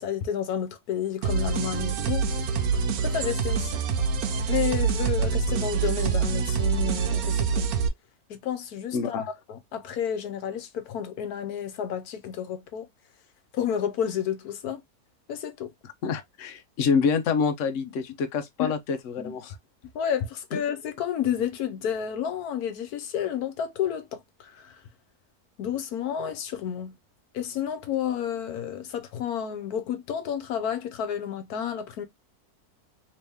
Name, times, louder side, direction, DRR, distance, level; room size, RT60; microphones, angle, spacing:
voice 1, 0.0-2.3 3.0-3.8 4.5-7.6 8.3-12.9 13.5-14.8 15.3-15.7 18.6-18.7 19.2-19.4 19.9-24.8 25.6-26.9 27.3-32.1, left 9 dB, 80° left, 1.2 m, -31 dB
sound 1, 1.2-7.9, right 6 dB, 75° right, 1.1 m, -26 dB
voice 2, 8.9-9.2 16.0-19.5, left 5 dB, 60° left, 1.0 m, -26 dB
3.1 x 2.9 x 3.3 m
omnidirectional pair, 1.6 m